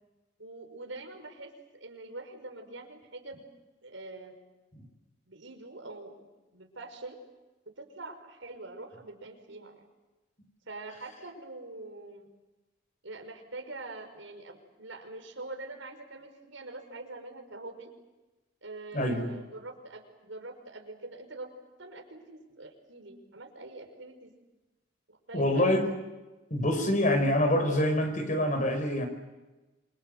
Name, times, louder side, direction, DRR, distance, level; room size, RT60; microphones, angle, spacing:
voice 1, 0.4-3.4 3.8-4.3 5.3-6.3 6.5-7.2 7.8-9.8 10.7-12.3 13.0-17.9 18.6-21.5 21.8-24.3 25.1-25.7, right 2 dB, 90° right, 4 dB, 5.6 m, -44 dB
voice 2, 18.9-19.3 25.3-25.9 26.5-29.1, left 1 dB, 40° left, 6 dB, 5.3 m, -26 dB
28.0 x 25.0 x 8.0 m, 1.1 s
head